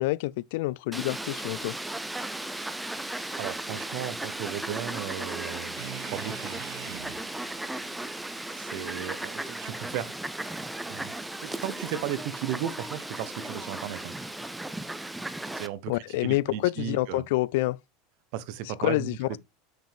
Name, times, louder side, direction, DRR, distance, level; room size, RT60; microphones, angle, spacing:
voice 1, 0.0-1.8 15.9-17.8 18.8-19.4, left 19 dB, 70° left, 0.3 m, -27 dB
Fowl, 0.9-15.7, right 1 dB, 5° right, 0.5 m, -36 dB
voice 2, 3.4-5.8 6.1-6.6 8.5-10.1 10.9-11.1 11.4-14.2 15.5-17.3 18.3-19.4, right 11 dB, 60° right, 0.9 m, -35 dB
sound 1, 5.8-9.9, right 12 dB, 85° right, 0.9 m, -46 dB
5.9 x 5.1 x 3.5 m
supercardioid pair, 145°, 0 cm